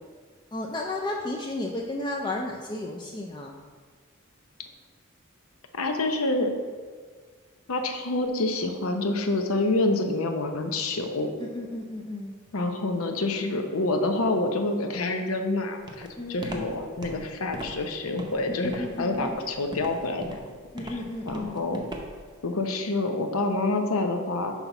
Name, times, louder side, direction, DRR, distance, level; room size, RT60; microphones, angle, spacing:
voice 1, 0.5-3.6 11.4-12.3 16.2-16.8 18.5-19.4 20.7-21.6, left 2 dB, 20° left, 0 dB, 0.4 m, -33 dB
voice 2, 5.8-6.5 7.7-11.3 12.5-20.4 20.8-20.9 21.3-21.8 22.4-24.5, left 2 dB, 85° left, 5 dB, 0.8 m, -27 dB
Walk footsteps, 15.9-22.3, right 1 dB, 20° right, 0.7 m, -39 dB
5.8 x 4.0 x 5.8 m, 1.5 s
head